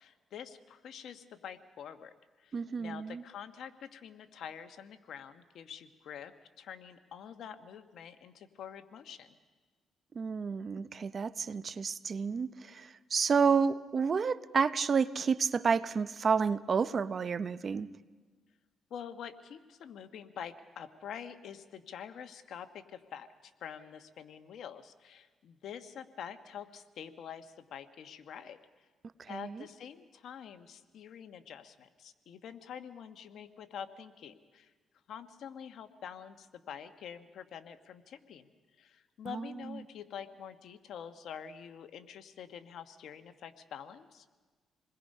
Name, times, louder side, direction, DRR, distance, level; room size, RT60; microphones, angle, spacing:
voice 1, 0.0-6.3 6.6-9.3 18.9-28.6 29.3-34.7 35.1-38.5 38.8-44.2, left 8 dB, 70° left, 9 dB, 1.3 m, -46 dB
voice 2, 2.5-3.2 10.1-17.9 29.2-29.6 39.3-39.8, right 5 dB, 45° right, 14 dB, 0.7 m, -30 dB
28.0 x 21.0 x 5.5 m, 1.4 s
cardioid pair, 90°, 0 cm